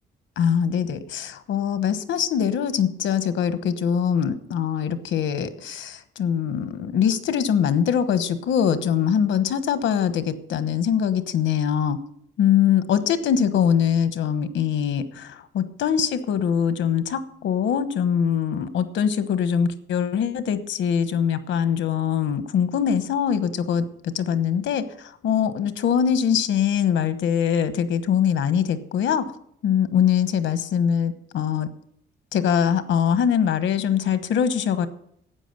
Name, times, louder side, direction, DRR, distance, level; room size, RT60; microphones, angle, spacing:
voice 1, 0.4-12.0 12.4-29.2 29.6-31.7 32.3-34.9, left 8 dB, 75° left, 12 dB, 1.1 m, -23 dB
12.5 x 8.5 x 6.6 m, 0.69 s
cardioid pair, 150°, 20 cm